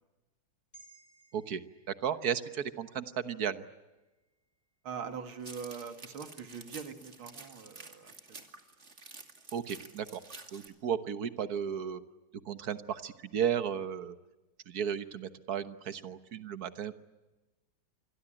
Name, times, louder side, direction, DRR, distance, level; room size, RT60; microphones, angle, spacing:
sound 1, 0.7-5.2 5.6-5.8, right 2 dB, 20° left, 5.9 m, -63 dB
voice 1, 2.0-3.6 9.5-10.2 10.5-12.0 12.4-14.2 14.7-16.9, right 8 dB, 50° right, 11 dB, 1.5 m, -34 dB
voice 2, 4.8-8.4, right 6 dB, 80° right, 7 dB, 2.9 m, -43 dB
sound 2, 5.4-10.7, right 3 dB, 35° right, 2.6 m, -50 dB
27.5 x 22.0 x 8.9 m, 1.1 s
omnidirectional pair, 2.3 m